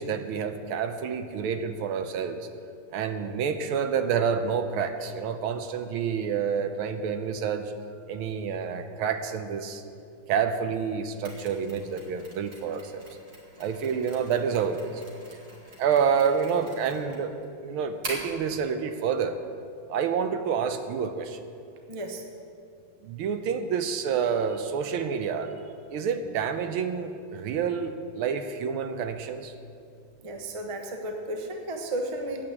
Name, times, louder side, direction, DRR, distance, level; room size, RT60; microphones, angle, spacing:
voice 1, 0.0-2.5 2.9-7.7 8.1-9.8 10.3-13.0 13.6-15.0 15.8-17.3 17.6-19.4 19.9-21.4 23.0-25.5 25.9-29.5, right 6 dB, 80° right, 8 dB, 1.6 m, -28 dB
Mechanisms, 11.2-18.4, right 1 dB, 45° right, 2.5 m, -44 dB
voice 2, 21.9-22.2 30.2-32.4, right 1 dB, 25° right, 3 dB, 0.7 m, -33 dB
10.5 x 8.6 x 7.9 m, 2.5 s
omnidirectional pair, 2.3 m